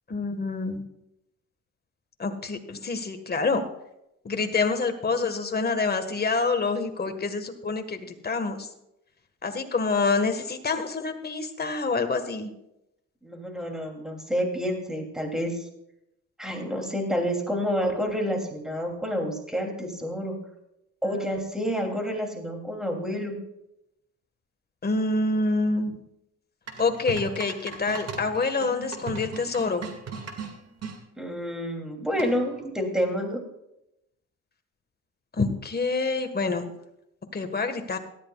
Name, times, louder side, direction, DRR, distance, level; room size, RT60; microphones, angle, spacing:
voice 1, 0.1-0.8 2.2-3.6 4.2-8.7 9.4-12.5 21.0-21.3 24.8-26.0 26.8-29.8 35.4-36.7 37.3-38.0, left 3 dB, 30° left, 7 dB, 1.6 m, -27 dB
voice 2, 13.2-15.6 16.4-20.3 21.0-23.3 31.2-33.4, equal, ahead, 2 dB, 3.0 m, -29 dB
sound 1, 26.7-31.0 32.2-32.6, right 5 dB, 55° right, 2.2 m, -38 dB
17.5 x 13.0 x 2.4 m, 0.85 s
cardioid pair, 90°, 30 cm